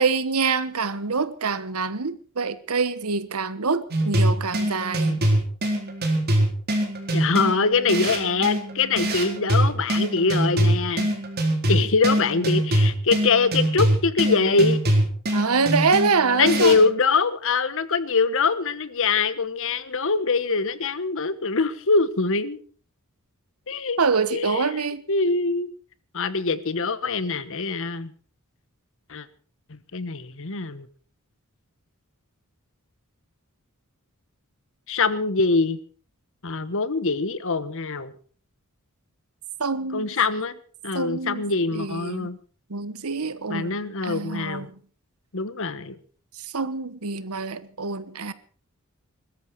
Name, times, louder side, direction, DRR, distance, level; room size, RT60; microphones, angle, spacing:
voice 1, 0.0-5.2 15.3-16.8 24.0-25.0 39.6-40.1 40.9-41.5 41.7-42.3 42.7-43.8 44.0-44.7 46.4-48.3, right 4 dB, 90° right, 1.2 m, -25 dB
sound 1, 3.9-16.9, right 1 dB, 45° right, 4.1 m, -23 dB
voice 2, 7.1-11.1 11.7-14.8 16.3-22.6 23.7-24.0 24.3-24.7 25.1-25.7 26.1-28.1 29.1-29.3 29.7-30.9 34.9-35.8 36.4-38.1 39.9-40.5 40.8-42.4 43.5-44.7 45.3-46.0, left 4 dB, 65° left, 1.2 m, -23 dB
21.0 x 13.5 x 4.7 m
head